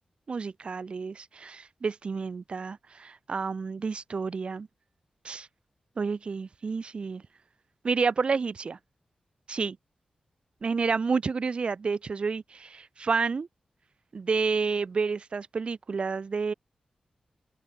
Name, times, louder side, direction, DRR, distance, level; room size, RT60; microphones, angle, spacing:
voice 1, 0.3-4.7 5.2-5.5 6.0-7.2 7.8-8.8 9.5-9.8 10.6-13.5 14.1-16.5, right 5 dB, 50° right, 7.1 m, -30 dB
wide cardioid pair, 135°, 2 cm